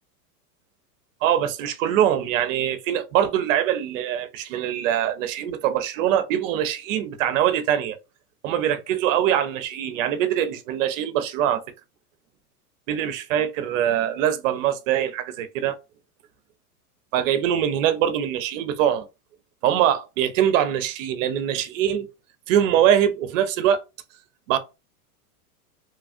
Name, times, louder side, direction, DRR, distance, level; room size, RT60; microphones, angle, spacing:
voice 1, 1.2-8.0 8.4-11.6 12.9-15.7 17.1-19.1 19.6-22.1 22.5-23.8 24.5-24.6, right 10 dB, 55° right, 0.7 m, -23 dB
3.1 x 2.3 x 2.5 m
hypercardioid pair, 120°, 47 cm